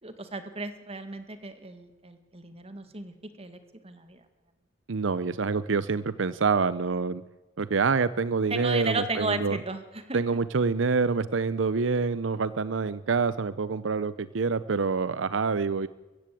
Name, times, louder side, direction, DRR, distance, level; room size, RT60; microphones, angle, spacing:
voice 1, 0.0-3.6 3.8-4.2 8.5-10.2, right 3 dB, 30° right, 9 dB, 1.9 m, -34 dB
voice 2, 4.9-7.2 7.6-9.6 10.1-15.9, right 4 dB, 80° right, 16 dB, 0.6 m, -26 dB
23.0 x 15.5 x 8.5 m, 1.1 s
head